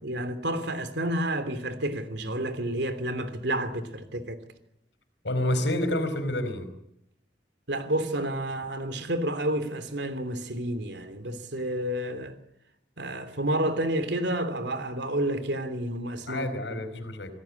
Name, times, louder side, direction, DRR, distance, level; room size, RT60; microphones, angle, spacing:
voice 1, 0.0-4.4 7.7-12.4 13.0-17.0, right 1 dB, 70° right, 3.1 m, -30 dB
voice 2, 5.2-6.7 16.2-17.3, left 1 dB, 75° left, 4.8 m, -28 dB
27.5 x 18.0 x 8.6 m
head